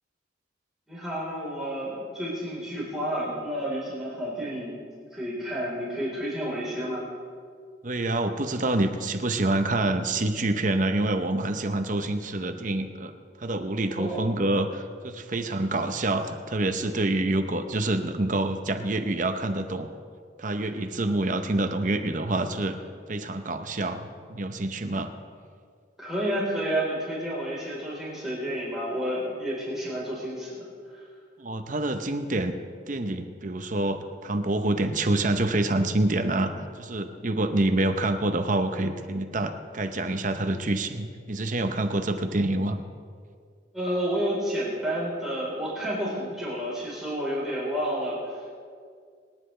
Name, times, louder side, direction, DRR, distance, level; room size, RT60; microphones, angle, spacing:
voice 1, 0.9-4.8 5.1-7.0 13.9-14.3 26.0-30.6 30.9-31.0 43.7-48.2, equal, ahead, -7 dB, 3.9 m, -30 dB
voice 2, 7.8-13.1 13.4-19.9 20.4-22.8 23.1-25.1 31.4-32.6 32.9-42.8, right 2 dB, 40° right, 7 dB, 0.8 m, -27 dB
26.5 x 10.0 x 3.3 m, 2.1 s
head